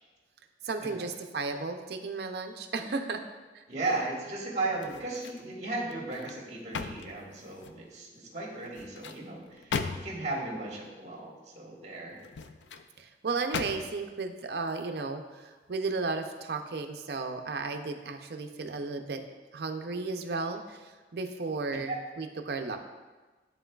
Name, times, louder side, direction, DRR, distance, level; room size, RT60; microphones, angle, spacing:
voice 1, 0.6-3.2 3.5-3.6 13.0-19.2 19.5-22.8, right 3 dB, 60° right, 5 dB, 0.5 m, -34 dB
voice 2, 3.7-9.8 10.0-12.2 21.9-22.0, right 2 dB, 40° right, -3 dB, 1.6 m, -35 dB
sound 1, 4.7-5.5 5.9-7.9 8.6-10.3 12.1-12.9 13.5-14.1 14.6-14.8, left 5 dB, 80° left, 0.4 m, -38 dB
11.5 x 3.9 x 2.3 m, 1.3 s
head